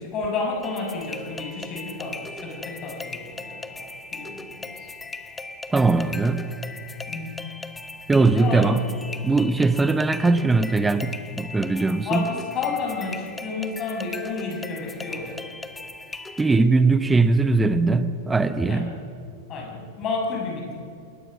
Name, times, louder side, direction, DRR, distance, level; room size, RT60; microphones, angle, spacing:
voice 1, 0.0-3.9 4.1-4.9 7.1-7.4 8.3-8.8 12.0-15.4 18.7-18.9 19.5-20.8, left 4 dB, 35° left, 1 dB, 6.4 m, -31 dB
sound 1, 0.6-16.6, left 3 dB, 10° left, 1.1 m, -38 dB
voice 2, 5.7-6.5 8.1-8.8 9.2-12.3 16.4-18.9, right 3 dB, 10° right, 12 dB, 1.1 m, -20 dB
27.5 x 21.0 x 6.4 m, 2.5 s
figure-of-eight pair, 90°, 0 cm